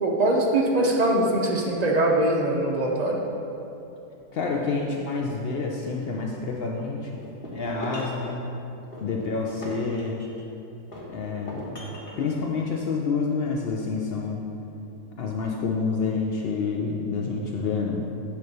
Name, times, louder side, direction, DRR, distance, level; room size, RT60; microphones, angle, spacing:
voice 1, 0.0-3.2, right 1 dB, 65° right, -1 dB, 0.4 m, -22 dB
voice 2, 4.3-7.1 7.5-8.5 9.0-10.2 11.1-11.8 12.2-14.4 15.2-18.0, left 4 dB, 85° left, -1 dB, 0.5 m, -28 dB
sound 1, 7.2-8.2 8.9-10.5 10.9-12.3, equal, 35° left, 1.4 m, -39 dB
9.3 x 3.3 x 6.6 m, 2.9 s
omnidirectional pair, 1.7 m